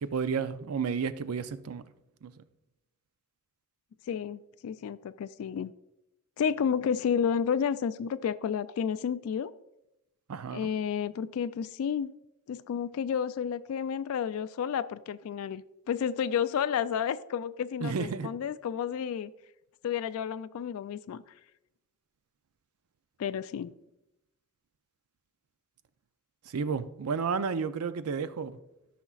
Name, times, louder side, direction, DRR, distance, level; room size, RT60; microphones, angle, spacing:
voice 1, 0.0-1.8 2.2-2.3 10.3-10.7 17.8-18.3 26.5-28.6, right 5 dB, 85° right, 13 dB, 0.5 m, -32 dB
voice 2, 4.1-5.7 6.4-9.5 10.5-12.1 12.5-19.3 19.8-21.2 23.2-23.7, left 7 dB, 70° left, 14 dB, 0.3 m, -31 dB
13.5 x 5.9 x 2.4 m, 0.89 s
head